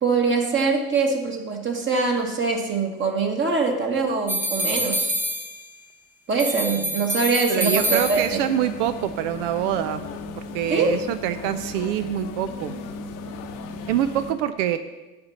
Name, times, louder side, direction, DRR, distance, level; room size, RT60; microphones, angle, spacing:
voice 1, 0.0-5.1 6.3-8.4 10.7-11.0, right 4 dB, 25° right, 2 dB, 1.3 m, -23 dB
sound 1, 4.3-5.9 6.4-8.6, equal, 5° right, 0.8 m, -27 dB
voice 2, 7.5-10.1 10.3-12.8 13.9-14.8, right 11 dB, 55° right, 10 dB, 0.6 m, -25 dB
sound 2, 7.8-14.3, left 3 dB, 45° left, 1.0 m, -36 dB
8.0 x 5.0 x 7.0 m, 1.1 s
hypercardioid pair, 80°, 44 cm